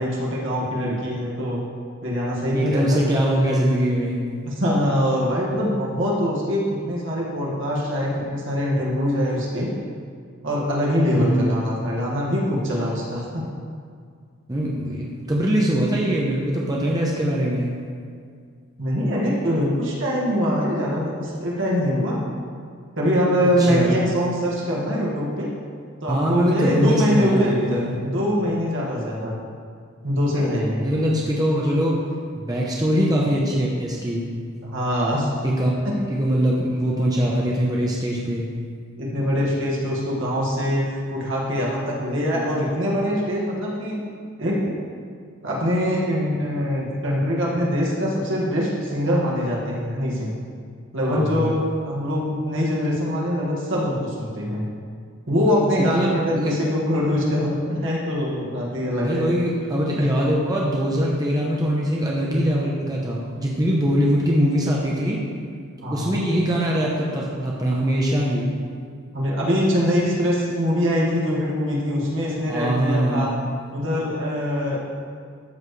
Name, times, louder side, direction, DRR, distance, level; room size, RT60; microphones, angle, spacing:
voice 1, 0.0-1.6 2.0-3.2 4.5-9.7 10.4-13.5 15.1-15.2 18.8-22.2 23.0-25.5 26.0-29.4 30.0-31.0 34.6-35.3 35.8-35.9 39.0-44.0 44.4-44.8 45.4-50.3 50.9-54.6 55.3-59.3 60.0-60.2 65.8-66.2 69.1-73.3 73.7-74.8, equal, 60° right, -4 dB, 2.0 m, -23 dB
voice 2, 2.5-4.2 11.1-11.6 14.5-17.7 23.4-24.0 26.1-28.0 30.8-32.0 32.3-34.2 35.4-35.7 36.1-38.5 51.0-51.5 55.8-56.5 59.0-65.2 65.9-68.5 72.5-73.4, equal, 20° right, -4 dB, 0.9 m, -22 dB
13.0 x 7.3 x 3.3 m, 2.1 s
head